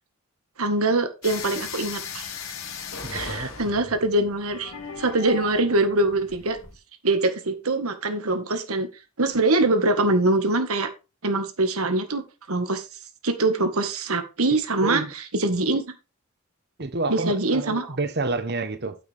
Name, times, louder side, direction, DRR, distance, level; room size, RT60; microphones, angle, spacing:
voice 1, 0.6-2.2 3.1-6.6 7.0-8.9 9.2-10.9 11.2-12.8 13.2-15.0 15.4-15.8 17.1-18.0, right 2 dB, 85° right, 1.7 m, -23 dB
sound 1, 1.2-6.8, left 6 dB, 70° left, 2.2 m, -37 dB
voice 2, 3.0-3.5 3.7-3.9 14.5-15.1 16.8-19.0, right 2 dB, 50° right, 1.1 m, -29 dB
9.4 x 7.9 x 3.5 m
head